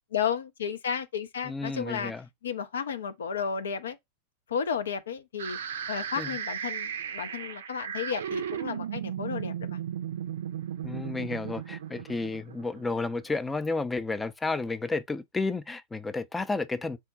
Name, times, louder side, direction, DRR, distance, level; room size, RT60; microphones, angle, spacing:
voice 1, 0.1-2.1 2.4-4.0 4.5-5.6 5.9-9.8, left 7 dB, 65° left, 0.5 m, -33 dB
voice 2, 1.4-2.3 6.2-6.4 10.8-17.0, left 3 dB, 10° left, 0.4 m, -32 dB
sound 1, 5.4-13.3, right 9 dB, 65° right, 0.4 m, -36 dB
3.6 x 2.1 x 4.0 m
figure-of-eight pair, 90°, 0 cm